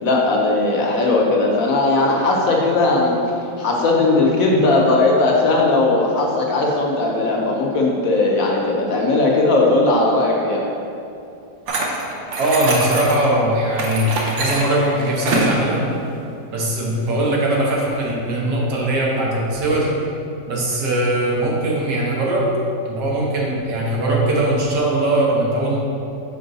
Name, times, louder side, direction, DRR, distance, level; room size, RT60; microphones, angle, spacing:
voice 1, 0.0-3.2 3.6-10.7, left 2 dB, 65° left, -1 dB, 1.0 m, -18 dB
sound 1, 11.7-13.3 13.8-15.6, right 2 dB, 55° right, 0.9 m, -24 dB
voice 2, 12.4-14.1 14.4-15.8 16.5-19.9 20.5-22.5 22.8-25.8, right 1 dB, 80° right, -4 dB, 1.7 m, -20 dB
5.3 x 4.7 x 4.0 m, 2.7 s
omnidirectional pair, 1.8 m